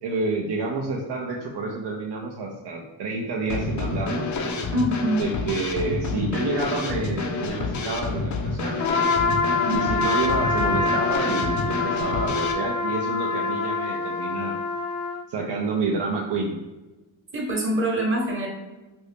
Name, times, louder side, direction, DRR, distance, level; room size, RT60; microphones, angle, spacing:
voice 1, 0.0-4.3 5.2-8.8 9.7-14.6 15.3-16.6, right 3 dB, 55° right, -1 dB, 0.6 m, -29 dB
Drum kit / Snare drum, 3.5-12.5, left 3 dB, 40° left, 0.5 m, -29 dB
voice 2, 4.7-5.2 9.6-9.8 17.3-18.5, equal, 25° right, -2 dB, 1.1 m, -24 dB
Trumpet, 8.8-15.2, left 4 dB, 70° left, 0.8 m, -25 dB
2.7 x 2.6 x 3.4 m, 1.1 s
cardioid pair, 65°, 47 cm